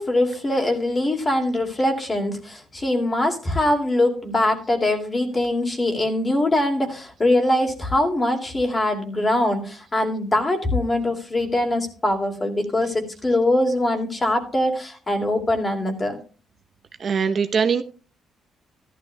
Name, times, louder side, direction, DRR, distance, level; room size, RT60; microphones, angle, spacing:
voice 1, 0.0-16.2, left 1 dB, 25° left, 4 dB, 2.5 m, -22 dB
voice 2, 17.0-17.8, right 6 dB, 50° right, 7 dB, 0.8 m, -21 dB
14.0 x 12.0 x 2.3 m, 0.36 s
cardioid pair, 90°, 0 cm